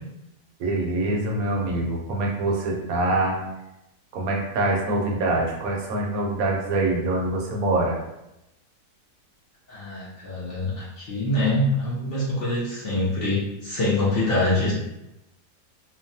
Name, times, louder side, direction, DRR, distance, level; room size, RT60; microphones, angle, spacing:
voice 1, 0.6-3.4 4.1-8.0, right 2 dB, 70° right, -1 dB, 0.9 m, -24 dB
voice 2, 9.7-14.7, left 1 dB, 75° left, -7 dB, 0.5 m, -25 dB
3.0 x 2.1 x 2.6 m, 0.90 s
omnidirectional pair, 1.8 m